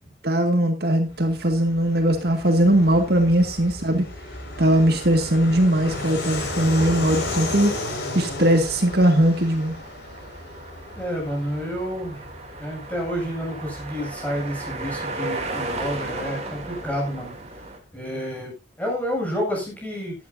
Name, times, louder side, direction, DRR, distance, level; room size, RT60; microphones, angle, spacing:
voice 1, 0.2-4.0 4.6-7.7 8.1-9.8, right 1 dB, 55° right, 4 dB, 2.1 m, -20 dB
Fixed-wing aircraft airplane, 1.1-17.3, left 2 dB, 70° left, 5.6 m, -35 dB
sound 1, 8.8-17.8, right 2 dB, 35° right, 3.0 m, -35 dB
voice 2, 11.0-12.3 12.6-17.3 17.9-20.1, equal, 10° left, -2 dB, 7.4 m, -29 dB
16.5 x 11.0 x 2.7 m, 0.27 s
head